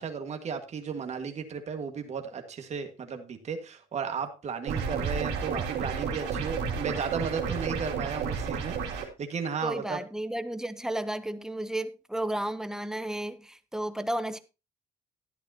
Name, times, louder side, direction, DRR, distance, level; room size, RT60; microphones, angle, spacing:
voice 1, 0.0-10.0, right 6 dB, 40° right, 1.8 m, -34 dB
sound 1, 4.7-9.1, right 6 dB, 80° right, 2.9 m, -31 dB
voice 2, 9.6-14.4, right 1 dB, 5° right, 0.9 m, -33 dB
12.0 x 10.5 x 2.9 m
cardioid pair, 110°, 17 cm